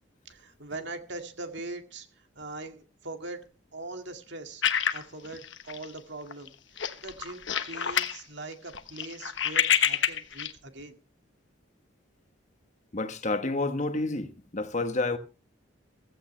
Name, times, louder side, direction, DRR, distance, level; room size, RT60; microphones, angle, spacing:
voice 1, 0.3-3.4 3.7-4.6 4.9-11.0, right 2 dB, 60° right, 2.1 m, -41 dB
sound 1, 4.6-6.0 6.3-6.5 6.8-8.2 8.5-10.5, left 8 dB, 65° left, 1.2 m, -27 dB
voice 2, 12.9-15.2, left 2 dB, 35° left, 1.2 m, -29 dB
16.0 x 15.5 x 3.3 m
head